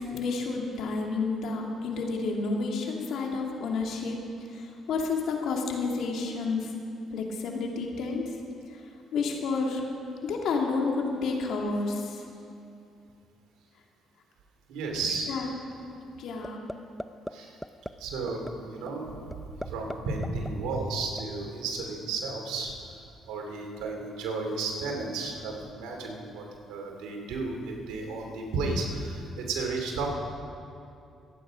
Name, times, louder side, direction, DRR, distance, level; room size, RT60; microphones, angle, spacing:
voice 1, 0.0-4.2 4.5-6.7 7.1-8.4 9.1-9.8 10.2-12.2 15.3-15.5 16.2-16.6, left 4 dB, 70° left, 1 dB, 2.4 m, -30 dB
voice 2, 14.7-15.3 17.3-17.6 18.0-22.7 23.3-30.1, right 3 dB, 80° right, 1 dB, 2.7 m, -33 dB
sound 1, 16.4-16.7 17.0-17.3 17.6-17.9 18.3-18.5 18.9-19.0 19.3-20.0 20.2-21.2, equal, 5° left, 0.6 m, -35 dB
25.5 x 9.3 x 5.1 m, 2.6 s
supercardioid pair, 65°, 0 cm